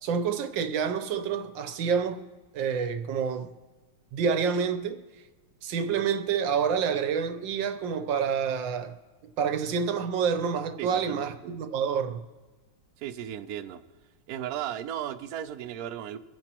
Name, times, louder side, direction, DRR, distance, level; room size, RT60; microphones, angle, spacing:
voice 1, 0.0-2.2 2.5-3.5 4.1-5.0 5.6-8.9 9.4-12.2, right 6 dB, 65° right, 1.5 m, -28 dB
voice 2, 10.8-11.5 13.0-13.8 14.3-16.2, right 10 dB, 85° right, 0.8 m, -36 dB
24.0 x 10.5 x 3.0 m
omnidirectional pair, 2.4 m